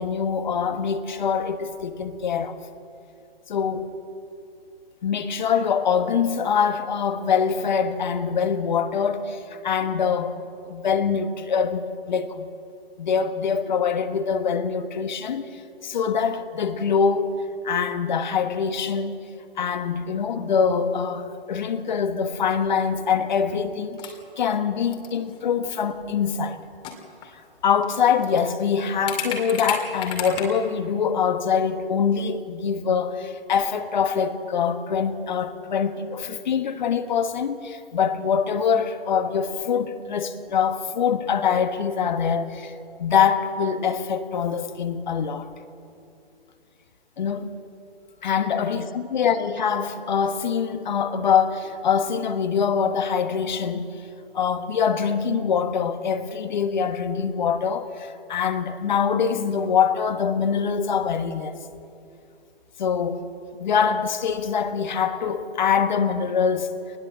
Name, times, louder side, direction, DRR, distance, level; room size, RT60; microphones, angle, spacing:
voice 1, 0.0-2.5 3.5-4.0 5.0-10.4 10.7-12.5 13.0-17.3 17.6-19.2 19.6-26.6 27.6-42.7 43.0-45.5 47.2-47.5 48.2-53.9 54.3-61.6 62.8-63.3 63.6-66.7, left 6 dB, 45° left, 1.5 m, -24 dB
sound 1, 21.9-22.0 22.2-22.3 23.2-23.6 23.8-24.2 24.9-25.4 26.6-26.7 26.8-27.5 27.8-27.9 28.2-28.4 29.1-30.4, left 8 dB, 15° left, 2.4 m, -33 dB
25.5 x 20.0 x 7.4 m
figure-of-eight pair, 140°, 32 cm